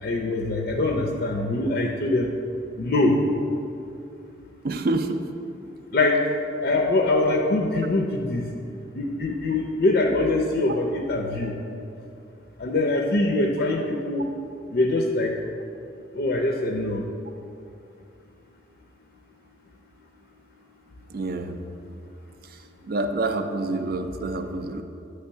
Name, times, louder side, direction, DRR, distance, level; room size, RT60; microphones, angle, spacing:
voice 1, 0.0-2.3 2.8-3.2 5.9-6.3 6.6-8.4 8.9-11.5 12.6-14.2 14.7-15.3 16.1-17.0, left 2 dB, 55° left, 1 dB, 0.5 m, -23 dB
voice 2, 4.6-5.2 21.1-21.6 22.8-24.8, right 2 dB, 55° right, 7 dB, 0.4 m, -27 dB
8.0 x 3.3 x 5.5 m, 2.6 s
head